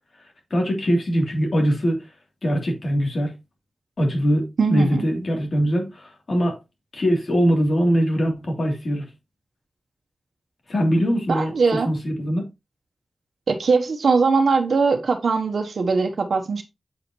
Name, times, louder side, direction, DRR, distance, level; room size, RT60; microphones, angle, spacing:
voice 1, 0.5-2.0 2.4-3.3 4.0-6.6 6.9-9.1 10.7-12.5, equal, 65° left, 3.1 m, -22 dB
voice 2, 4.6-5.1 11.3-11.9 13.5-16.6, right 4 dB, 85° right, 1.1 m, -21 dB
7.9 x 5.2 x 3.1 m
wide cardioid pair, 65°, 0 cm